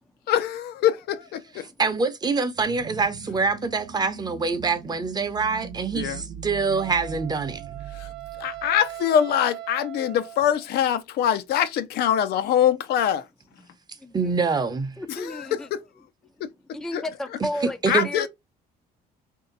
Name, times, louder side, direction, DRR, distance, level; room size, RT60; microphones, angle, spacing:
voice 1, 0.3-1.7 5.9-6.2 7.9-8.1 8.4-13.2 15.1-15.8 16.4-16.5 16.9-17.0 17.9-18.3, left 10 dB, 70° left, 0.5 m, -24 dB
voice 2, 1.8-7.6 14.1-15.0 17.8-18.1, right 4 dB, 25° right, 0.7 m, -25 dB
sound 1, 2.5-9.0, right 6 dB, 55° right, 0.9 m, -41 dB
Wind instrument woodwind instrument, 6.8-10.7, right 14 dB, 75° right, 0.7 m, -39 dB
voice 3, 15.0-15.7 16.7-18.3, left 1 dB, 5° left, 0.4 m, -33 dB
3.2 x 2.7 x 3.9 m
cardioid pair, 110°, 17 cm